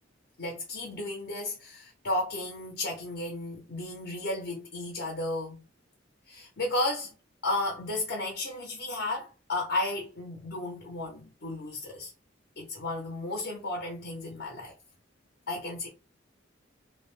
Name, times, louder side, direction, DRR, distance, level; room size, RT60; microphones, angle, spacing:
voice 1, 0.4-5.6 6.3-7.1 7.4-12.1 12.6-14.7 15.5-15.9, left 2 dB, 60° left, 0.7 m, -33 dB
2.5 x 2.0 x 3.1 m
head